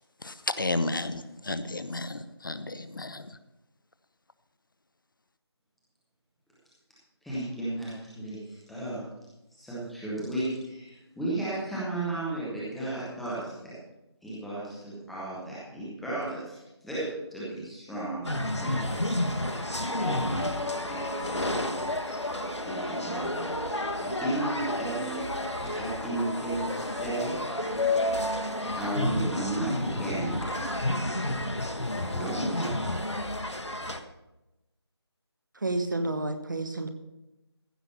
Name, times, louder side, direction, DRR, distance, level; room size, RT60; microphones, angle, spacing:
voice 1, 0.2-3.2, left 2 dB, 50° left, 12 dB, 0.8 m, -32 dB
voice 2, 7.2-9.0 9.5-13.7 14.2-16.5 16.8-18.2 18.6-18.8 19.1-21.4 21.7-21.8 22.4-27.4 28.8-30.5 31.9-32.7, right 1 dB, ahead, -9 dB, 0.7 m, -34 dB
sound 1, 18.2-34.0, left 1 dB, 90° left, 1.4 m, -30 dB
voice 3, 35.5-36.9, right 2 dB, 45° right, 8 dB, 1.2 m, -30 dB
15.0 x 6.0 x 6.9 m, 0.98 s
figure-of-eight pair, 165°, 14 cm